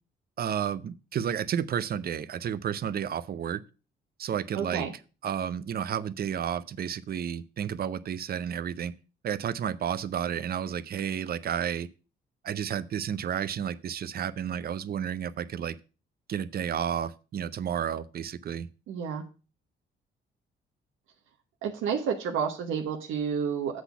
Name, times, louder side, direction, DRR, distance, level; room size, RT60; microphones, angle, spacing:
voice 1, 0.4-3.6 4.2-4.9 5.2-8.9 9.2-11.9 12.4-15.8 16.3-18.7, right 8 dB, 50° right, 0.6 m, -31 dB
voice 2, 4.5-4.9 18.9-19.2 21.6-23.8, right 7 dB, 90° right, 1.1 m, -30 dB
7.9 x 4.1 x 6.8 m
cardioid pair, 90°, 20 cm